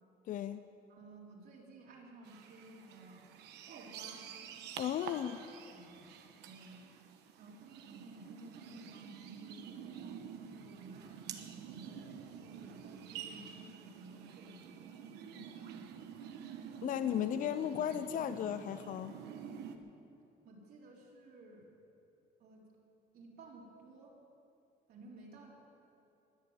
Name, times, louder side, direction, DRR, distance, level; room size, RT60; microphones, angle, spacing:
voice 1, 0.3-0.6 4.8-5.4 16.8-19.1, left 10 dB, 55° left, 11 dB, 0.5 m, -35 dB
voice 2, 0.9-3.3 3.7-4.2 4.9-5.4 5.7-6.1 6.4-6.8 7.4-11.2 11.6-14.9 15.1-16.2 20.4-21.7 22.4-22.6 23.1-24.1 24.9-25.5, right 2 dB, 65° right, -3 dB, 3.8 m, -55 dB
sound 1, 2.2-19.8, right 8 dB, 85° right, 1.1 m, -48 dB
21.0 x 7.0 x 8.9 m, 2.9 s
cardioid pair, 110°, 17 cm